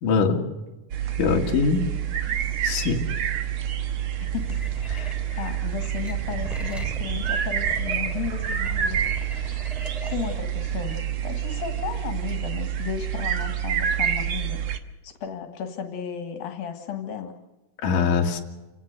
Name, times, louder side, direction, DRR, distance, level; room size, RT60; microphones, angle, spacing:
voice 1, 0.0-0.4 1.2-1.8 2.6-3.0 4.9-5.2 17.8-18.4, left 5 dB, 65° left, 1 dB, 3.3 m, -22 dB
sound 1, 0.9-14.8, right 9 dB, 60° right, 1.4 m, -28 dB
voice 2, 4.2-4.9 5.4-9.7 10.0-14.6 15.0-17.3, left 8 dB, 80° left, 6 dB, 3.5 m, -34 dB
sound 2, 4.3-10.4, right 1 dB, ahead, 2.2 m, -38 dB
28.0 x 18.0 x 6.6 m, 1.1 s
omnidirectional pair, 4.1 m